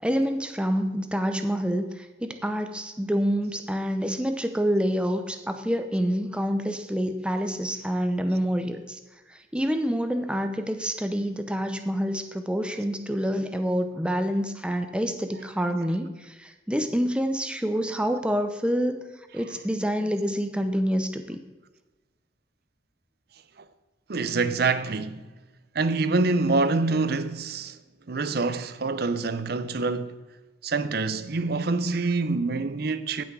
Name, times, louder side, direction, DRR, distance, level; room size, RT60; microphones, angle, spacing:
voice 1, 0.0-9.0 9.3-19.0 19.3-21.4, equal, 5° right, 0.7 m, -27 dB
voice 2, 19.8-20.2 23.6-23.7 24.1-25.3 25.7-27.8 28.1-30.2 30.6-33.2, right 3 dB, 55° right, 0.6 m, -26 dB
16.5 x 6.2 x 4.8 m
head